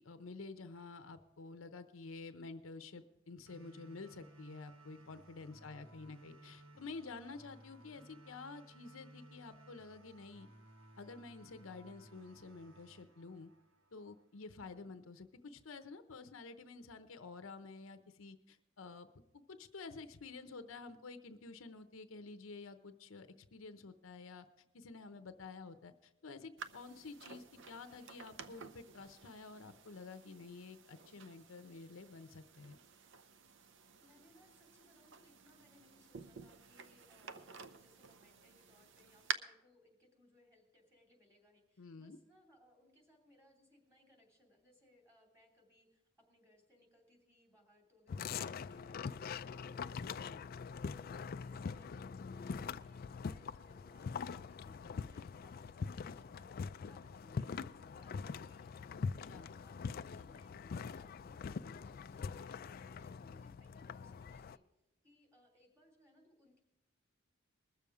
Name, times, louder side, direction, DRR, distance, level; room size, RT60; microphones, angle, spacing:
voice 1, 0.0-10.5 11.0-13.5 13.9-19.1 19.5-24.5 24.7-32.8 41.8-42.2 59.1-59.5, left 4 dB, 75° left, 9 dB, 0.7 m, -50 dB
sound 1, 3.5-14.4, right 1 dB, 80° right, 1.3 m, -60 dB
voice 2, 20.3-20.6 34.0-58.9 59.3-64.6 65.0-66.6, left 1 dB, 15° right, 0 dB, 2.9 m, -67 dB
sound 2, 26.6-39.3, right 6 dB, 60° right, 0.6 m, -50 dB
sound 3, 48.1-64.6, left 5 dB, 45° left, 0.3 m, -43 dB
21.0 x 7.0 x 4.9 m, 0.90 s
head